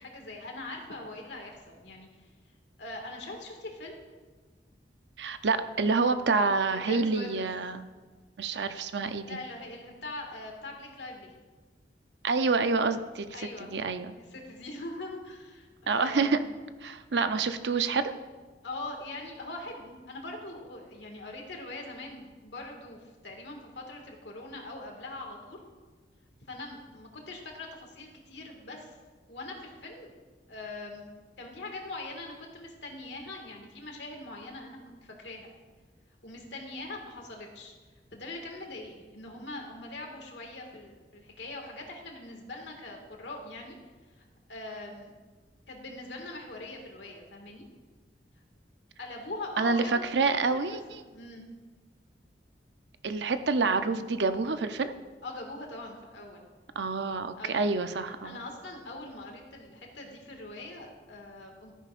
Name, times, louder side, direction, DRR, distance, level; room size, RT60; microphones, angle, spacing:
voice 1, 0.0-2.1 2.8-4.0 6.7-7.5 9.3-11.3 13.3-13.7 14.1-16.5 18.6-25.6 26.5-28.9 29.3-30.1 30.5-31.1 31.4-35.5 36.2-37.7 38.1-43.8 44.2-44.3 44.5-45.1 45.7-47.7 49.0-50.8 51.1-51.4 55.2-56.4 57.3-57.8 58.1-61.7, left 2 dB, 85° left, 1 dB, 2.0 m, -42 dB
voice 2, 5.2-7.8 8.4-9.4 12.2-13.3 13.6-14.1 15.9-16.4 16.8-18.1 49.6-49.8 50.1-51.0 53.0-54.9 56.8-58.4, right 4 dB, 80° right, 10 dB, 0.6 m, -27 dB
13.5 x 10.0 x 2.5 m, 1.3 s
head